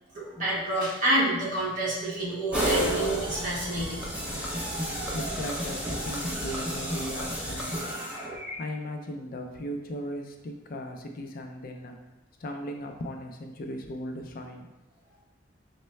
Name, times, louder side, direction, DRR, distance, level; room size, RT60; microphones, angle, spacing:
voice 1, 0.1-4.0, right 1 dB, 45° right, -6 dB, 1.3 m, -28 dB
sound 1, 2.5-8.5, equal, 5° right, 0.6 m, -31 dB
voice 2, 5.1-8.1 8.6-12.0 12.4-14.7, equal, 50° left, 4 dB, 0.4 m, -37 dB
5.2 x 2.1 x 3.1 m, 1.0 s
head